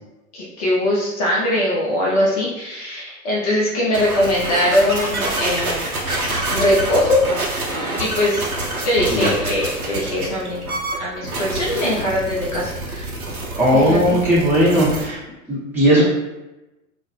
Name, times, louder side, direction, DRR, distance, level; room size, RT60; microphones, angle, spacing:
voice 1, 0.3-7.2 8.0-8.5 8.8-10.6 11.0-13.1 13.7-14.2, left 1 dB, 30° left, -5 dB, 0.4 m, -21 dB
sound 1, 3.9-15.1, right 2 dB, 80° right, 0.6 m, -27 dB
voice 2, 13.6-15.2 15.5-16.0, equal, 5° right, -10 dB, 0.8 m, -17 dB
2.2 x 2.0 x 3.1 m, 1.0 s
figure-of-eight pair, 95°, 43 cm